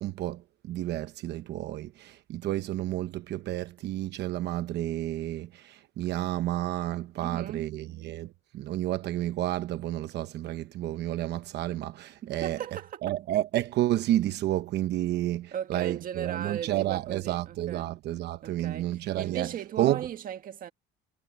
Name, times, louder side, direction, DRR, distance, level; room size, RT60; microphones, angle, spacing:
voice 1, 0.0-12.6 13.0-20.1, right 14 dB, 60° right, 0.9 m, -31 dB
voice 2, 7.2-7.7 12.2-13.1 15.5-17.9 18.4-20.7, right 10 dB, 45° right, 1.7 m, -37 dB
cardioid pair, 145°, 20 cm